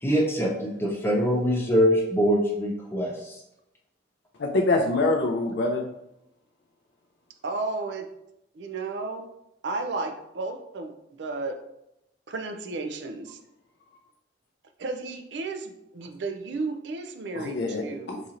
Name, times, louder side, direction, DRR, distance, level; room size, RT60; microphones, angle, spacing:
voice 1, 0.0-3.3, equal, 10° left, -2 dB, 0.5 m, -24 dB
voice 2, 4.4-5.9 17.3-18.2, left 2 dB, 60° left, 2 dB, 0.4 m, -25 dB
voice 3, 7.4-8.1 8.5-9.3 9.6-10.9 11.2-11.6 12.3-13.4 14.8-18.1, right 3 dB, 65° right, 6 dB, 0.4 m, -33 dB
4.0 x 2.9 x 2.5 m, 0.84 s
head